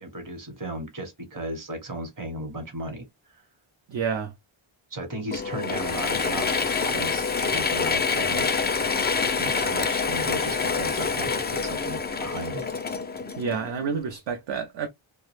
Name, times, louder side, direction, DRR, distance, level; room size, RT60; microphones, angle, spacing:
voice 1, 0.0-3.0 3.3-3.4 4.9-8.5 9.4-12.7, right 1 dB, 40° right, 1.1 m, -35 dB
voice 2, 3.9-4.3 13.3-14.9, right 6 dB, 60° right, 0.5 m, -29 dB
Mechanisms / Drill, 5.3-13.9, left 5 dB, 25° left, 0.3 m, -26 dB
2.4 x 2.2 x 3.1 m
wide cardioid pair, 140°, 49 cm